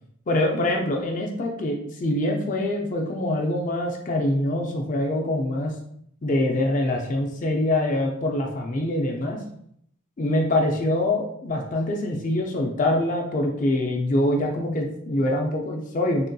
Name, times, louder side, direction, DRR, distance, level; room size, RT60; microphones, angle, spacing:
voice 1, 0.3-5.7 6.2-9.4 10.2-16.3, left 1 dB, 40° left, 1 dB, 0.4 m, -24 dB
3.5 x 2.6 x 2.2 m, 0.69 s
head